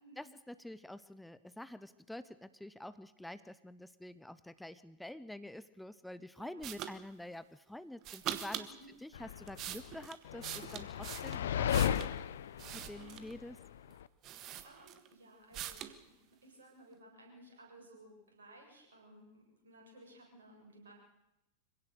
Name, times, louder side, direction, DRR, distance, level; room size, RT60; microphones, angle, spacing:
voice 1, 0.0-8.7 9.0-12.0 12.7-13.6, left 1 dB, 5° left, 14 dB, 0.7 m, -48 dB
voice 2, 6.4-6.9 8.6-8.9 12.9-13.5 14.4-20.9, right 1 dB, 70° right, 0 dB, 7.4 m, -58 dB
sound 1, 6.6-6.9 8.0-8.7 9.3-12.1 12.6-13.4 13.9-14.0 14.2-15.1 15.5-16.0, right 11 dB, 35° right, 1.5 m, -43 dB
sound 2, 9.1-14.0, left 9 dB, 60° left, 0.8 m, -35 dB
25.5 x 17.0 x 6.7 m, 0.92 s
figure-of-eight pair, 90°, 0 cm